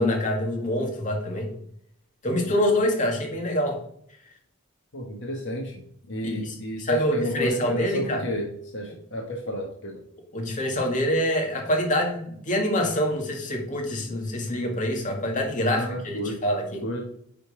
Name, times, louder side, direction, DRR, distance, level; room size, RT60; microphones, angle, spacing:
voice 1, 0.0-1.5 2.2-3.8 6.2-8.2 10.3-16.8, left 1 dB, 35° left, 1 dB, 1.9 m, -26 dB
voice 2, 4.9-10.0 15.7-16.4 16.8-17.0, equal, 55° left, 0 dB, 1.3 m, -31 dB
9.5 x 3.8 x 4.9 m, 0.66 s
head